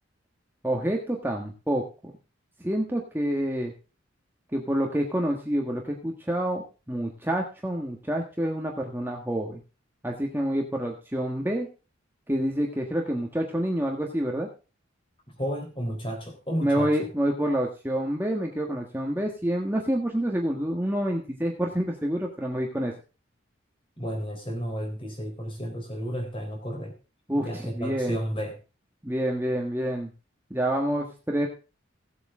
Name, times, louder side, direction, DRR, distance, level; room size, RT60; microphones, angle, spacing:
voice 1, 0.6-1.9 2.6-3.7 4.5-6.6 6.9-9.6 10.0-11.7 12.3-14.5 16.6-22.9 27.3-28.2 29.0-30.1 30.5-31.5, right 1 dB, 10° right, 1 dB, 1.5 m, -27 dB
voice 2, 15.4-16.9 24.0-27.0 27.3-28.5, equal, 25° left, 3 dB, 3.7 m, -32 dB
17.0 x 8.1 x 3.6 m, 0.32 s
head